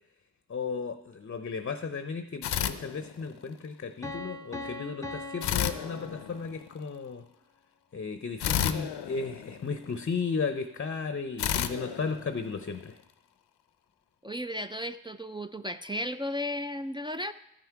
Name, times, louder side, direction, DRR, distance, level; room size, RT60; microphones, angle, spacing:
voice 1, 0.5-7.2 7.9-13.0, left 5 dB, 35° left, 9 dB, 0.6 m, -34 dB
sound 1, 2.4-3.6 5.4-6.8 8.4-10.1 11.4-12.9, left 10 dB, 85° left, 0.6 m, -32 dB
Piano, 4.0-6.8, left 2 dB, 10° left, 0.9 m, -41 dB
voice 2, 14.2-17.3, left 1 dB, 15° right, 7 dB, 0.3 m, -34 dB
13.0 x 5.8 x 4.6 m, 0.83 s
cardioid pair, 70°, 39 cm